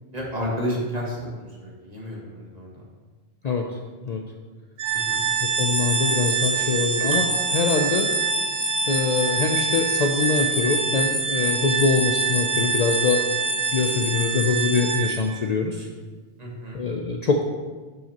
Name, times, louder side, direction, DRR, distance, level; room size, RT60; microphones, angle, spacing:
voice 1, 0.1-2.8 5.1-5.2 16.4-16.8, equal, 40° right, -4 dB, 1.8 m, -31 dB
Organ, 4.8-15.4, right 6 dB, 85° right, 0.9 m, -26 dB
sound 1, 4.9-15.2, left 1 dB, 30° left, 1.5 m, -29 dB
voice 2, 5.6-8.1 8.9-13.2 13.7-15.9 16.7-17.4, left 4 dB, 50° left, 2 dB, 0.6 m, -23 dB
10.5 x 5.6 x 2.9 m, 1.4 s
omnidirectional pair, 1.1 m